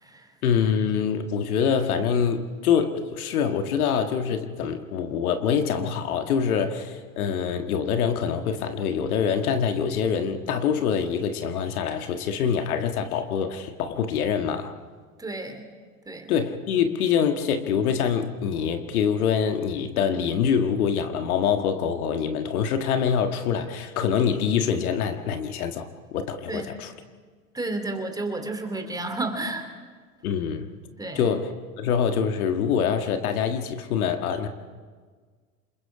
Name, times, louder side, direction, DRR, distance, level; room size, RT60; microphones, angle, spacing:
voice 1, 0.4-14.7 16.3-26.9 30.2-30.7 31.1-34.5, left 7 dB, 75° left, 7 dB, 1.7 m, -25 dB
voice 2, 15.2-15.6 16.1-16.3 26.5-26.7 27.5-29.6 31.0-31.3, right 2 dB, 10° right, 6 dB, 2.9 m, -31 dB
27.0 x 21.5 x 4.9 m, 1.5 s
hypercardioid pair, 100°, 44 cm